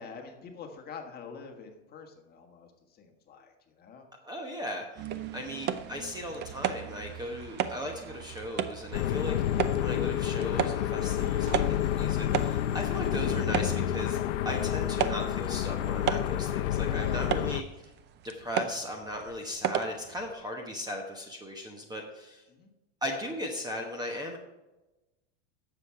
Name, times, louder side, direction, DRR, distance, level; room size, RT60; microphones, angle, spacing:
voice 1, 0.0-4.1 16.9-17.5 22.5-22.7, left 5 dB, 25° left, 3 dB, 1.6 m, -46 dB
voice 2, 4.2-17.9 18.3-22.4 23.0-24.4, left 1 dB, 10° right, 2 dB, 1.0 m, -37 dB
sound 1, 5.0-20.3, right 9 dB, 30° right, 0.6 m, -36 dB
sound 2, 6.7-13.0, right 2 dB, 65° right, 2.8 m, -52 dB
sound 3, 8.9-17.6, left 11 dB, 70° left, 0.7 m, -29 dB
9.8 x 7.3 x 4.7 m, 1.0 s
supercardioid pair, 140°, 37 cm